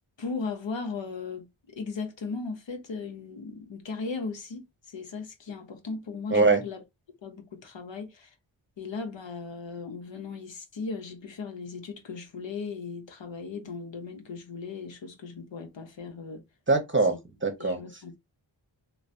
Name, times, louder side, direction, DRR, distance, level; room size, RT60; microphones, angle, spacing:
voice 1, 0.2-6.8 7.2-8.3 8.8-16.4 17.6-18.2, left 4 dB, 65° left, 0.9 m, -37 dB
voice 2, 6.3-6.6 16.7-17.1 17.4-17.8, right 3 dB, 25° right, 0.9 m, -22 dB
3.0 x 2.2 x 2.5 m
cardioid pair, 45°, 48 cm